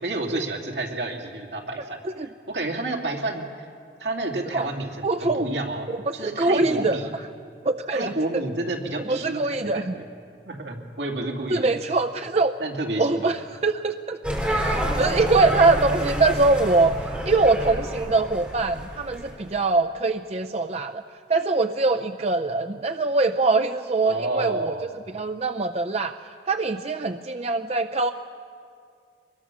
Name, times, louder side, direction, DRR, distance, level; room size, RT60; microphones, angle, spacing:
voice 1, 0.0-3.7 4.0-7.1 7.9-10.1 10.5-11.7 12.6-13.3 24.0-24.9, right 2 dB, 75° right, 1 dB, 2.7 m, -30 dB
voice 2, 5.0-5.5 6.1-7.0 7.6-8.1 9.1-9.9 11.5-12.5 13.0-14.2 14.5-21.0 21.3-24.8 25.1-26.1 26.5-28.1, right 3 dB, 35° right, 7 dB, 0.5 m, -23 dB
sound 1, 14.2-19.4, equal, 5° right, 3.5 m, -28 dB
24.5 x 21.0 x 6.2 m, 2.3 s
head